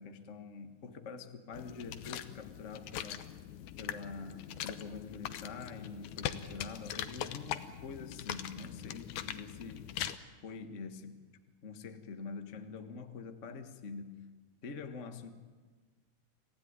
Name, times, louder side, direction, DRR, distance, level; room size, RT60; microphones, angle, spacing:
voice 1, 0.0-3.2 3.8-9.8 10.4-11.2 11.6-14.2 14.6-15.3, left 5 dB, 50° left, 8 dB, 0.8 m, -45 dB
sound 1, 1.5-10.2, left 11 dB, 70° left, 2.2 m, -42 dB
27.0 x 16.0 x 9.7 m, 1.4 s
omnidirectional pair, 3.9 m